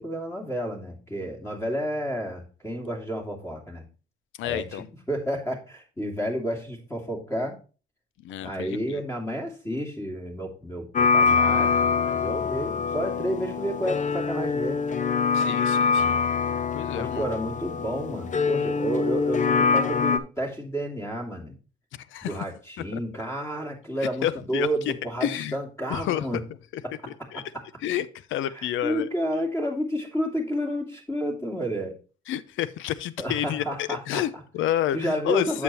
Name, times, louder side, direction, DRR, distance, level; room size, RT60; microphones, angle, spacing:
voice 1, 0.0-3.8 4.4-7.6 8.4-14.8 16.9-21.5 22.2-26.4 26.8-26.9 27.3-27.4 28.6-31.9 33.2-34.2 34.9-35.6, equal, 15° left, 2.7 m, -31 dB
voice 2, 4.4-4.9 8.2-9.0 15.3-16.2 16.7-17.3 21.9-22.4 22.8-23.0 24.2-25.0 25.2-25.6 25.9-26.4 26.7-26.8 27.3-27.4 27.8-29.1 32.3-35.6, left 12 dB, 80° left, 0.6 m, -29 dB
sound 1, 10.9-20.2, left 5 dB, 40° left, 0.7 m, -24 dB
8.3 x 7.1 x 3.0 m
cardioid pair, 90°, 20 cm